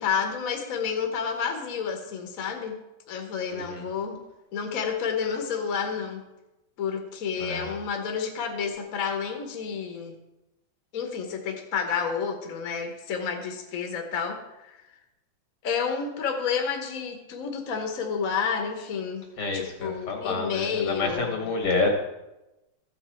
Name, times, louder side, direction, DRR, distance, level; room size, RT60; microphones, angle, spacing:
voice 1, 0.0-2.8 3.1-4.2 4.5-6.2 6.8-10.2 10.9-14.4 14.6-14.8 15.6-19.3 19.5-21.5, left 6 dB, 45° left, 3 dB, 1.3 m, -30 dB
voice 2, 3.5-3.9 7.4-7.7 19.4-21.9, left 3 dB, 85° left, 2 dB, 2.7 m, -28 dB
14.0 x 6.0 x 4.3 m, 0.97 s
omnidirectional pair, 2.3 m